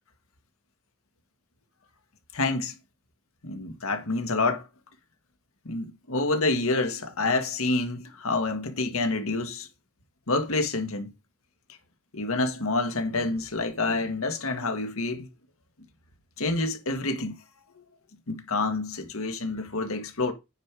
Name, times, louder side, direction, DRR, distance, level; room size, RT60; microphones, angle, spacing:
voice 1, 2.3-2.7 3.4-4.7 5.7-9.7 10.3-11.1 12.1-15.3 16.4-17.4 18.3-20.3, left 3 dB, 90° left, 1.6 m, -28 dB
9.0 x 5.2 x 4.8 m
head